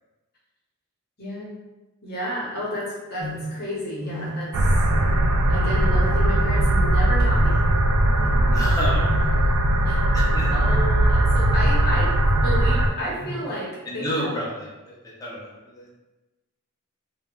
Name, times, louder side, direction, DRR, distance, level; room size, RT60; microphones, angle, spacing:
voice 1, 1.2-1.5 2.0-4.7 5.5-7.6 8.0-8.4 9.8-10.0 10.5-12.1 12.4-14.3, equal, 45° left, -5 dB, 0.8 m, -31 dB
sound 1, 3.2-3.7 4.0-4.6 4.8-5.4 5.7-6.2 6.5-7.0 7.3-7.8 8.1-8.5 9.0-9.4 10.3-10.9 11.4-11.8 12.3-12.6 13.2-13.5, equal, 45° right, 0.6 m, -34 dB
sound 2, 4.5-12.9, right 1 dB, 90° right, 0.3 m, -19 dB
voice 2, 8.5-9.4 9.7-9.9 10.1-10.6 13.8-15.9, equal, 15° left, -5 dB, 0.6 m, -31 dB
2.4 x 2.2 x 3.5 m, 1.1 s
head